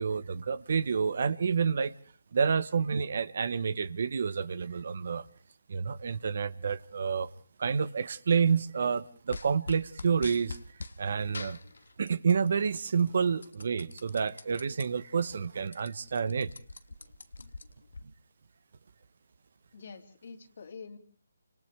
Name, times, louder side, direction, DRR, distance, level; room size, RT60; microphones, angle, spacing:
voice 1, 0.0-1.9 2.3-5.3 5.7-7.3 7.6-10.6 11.0-11.6 12.0-16.5, right 6 dB, 55° right, 18 dB, 0.9 m, -29 dB
sound 1, 9.3-11.0 11.3-12.5 12.8-14.8 15.3-15.4 15.6-18.0, left 3 dB, 75° left, 1.2 m, -43 dB
voice 2, 19.7-21.0, left 5 dB, 50° left, 5 dB, 2.8 m, -46 dB
29.5 x 26.0 x 3.4 m, 0.43 s
figure-of-eight pair, 155°, 0 cm